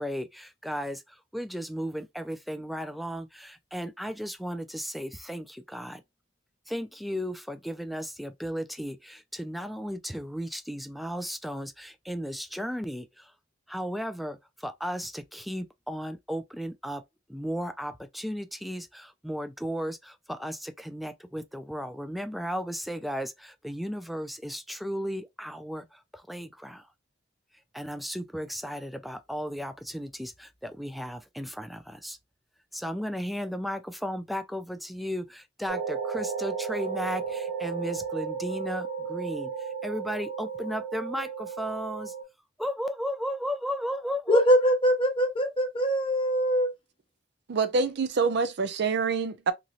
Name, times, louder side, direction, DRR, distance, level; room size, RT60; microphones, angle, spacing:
voice 1, 0.0-6.0 6.7-13.3 13.7-17.0 17.3-26.9 27.7-32.2 32.7-42.1 42.6-44.4, equal, ahead, 0.3 m, -35 dB
sound 1, 35.7-42.2, right 6 dB, 25° right, 0.8 m, -34 dB
voice 2, 44.3-46.7, equal, 30° left, 0.9 m, -23 dB
voice 3, 47.5-49.5, right 4 dB, 60° right, 0.5 m, -26 dB
3.0 x 2.6 x 2.4 m
head